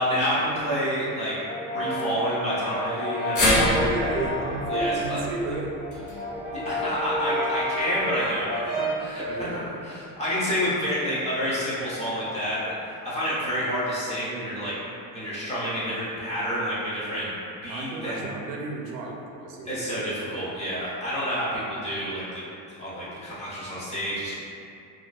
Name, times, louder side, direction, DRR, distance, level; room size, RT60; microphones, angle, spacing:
voice 1, 0.0-1.4 1.7-3.8 4.7-5.2 6.5-12.7 13.0-14.8 15.1-17.3 17.6-18.3 19.7-22.4 22.8-24.3, equal, 20° left, -9 dB, 0.4 m, -29 dB
Brass instrument, 1.4-5.1 5.5-9.1, equal, 40° left, 1.2 m, -30 dB
sound 1, 3.4-7.6 8.0-8.1 9.2-9.3, left 1 dB, 65° left, 0.8 m, -28 dB
voice 2, 3.7-5.7 9.2-9.9 17.7-19.9 20.2-20.5, right 2 dB, 90° right, 0 dB, 0.5 m, -33 dB
2.4 x 2.2 x 2.3 m, 2.6 s
cardioid pair, 170°, 34 cm